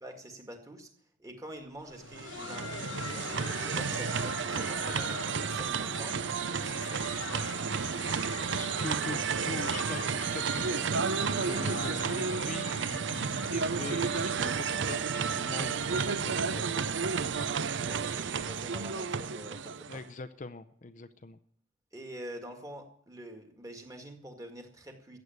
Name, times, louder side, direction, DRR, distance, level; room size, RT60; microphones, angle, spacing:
voice 1, 0.0-0.9 1.2-6.2 6.5-7.8 17.8-20.0 21.9-25.2, right 1 dB, 15° right, 4 dB, 2.0 m, -46 dB
Laughter, 1.7-17.4 17.7-17.8 18.4-18.5 19.0-19.2 20.3-20.4, left 5 dB, 85° left, 1.2 m, -44 dB
sound 1, 2.0-20.1, right 5 dB, 65° right, 0.6 m, -32 dB
voice 2, 8.4-10.9 11.3-16.8 19.9-21.4, left 3 dB, 40° left, 12 dB, 0.6 m, -42 dB
15.0 x 8.4 x 9.3 m, 0.64 s
head